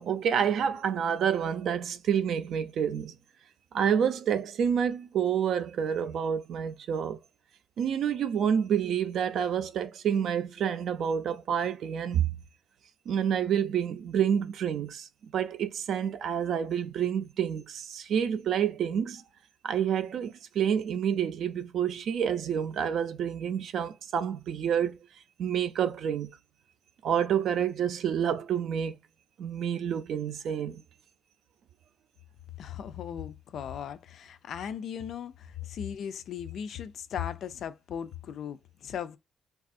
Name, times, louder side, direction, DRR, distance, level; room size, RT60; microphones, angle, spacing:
voice 1, 0.0-3.2 3.7-7.2 7.8-12.4 13.1-19.2 19.6-25.0 25.4-26.4 27.0-29.0 29.4-30.8, right 8 dB, 70° right, 0.4 m, -28 dB
voice 2, 32.6-39.2, left 8 dB, 70° left, 0.4 m, -37 dB
3.3 x 2.4 x 2.5 m
cardioid pair, 90°, 0 cm